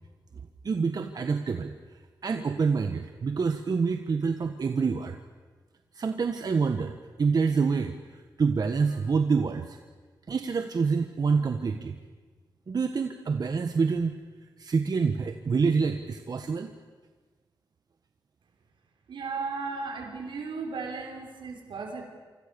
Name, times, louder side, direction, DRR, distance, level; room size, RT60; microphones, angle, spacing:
voice 1, 0.6-1.7 2.2-5.2 5.9-9.8 10.3-12.0 12.7-14.1 14.6-16.7, right 5 dB, 55° right, 6 dB, 1.5 m, -27 dB
voice 2, 19.1-22.0, right 4 dB, 85° right, 2 dB, 5.4 m, -35 dB
27.5 x 25.5 x 7.0 m, 1.4 s
cardioid pair, 85°, 8 cm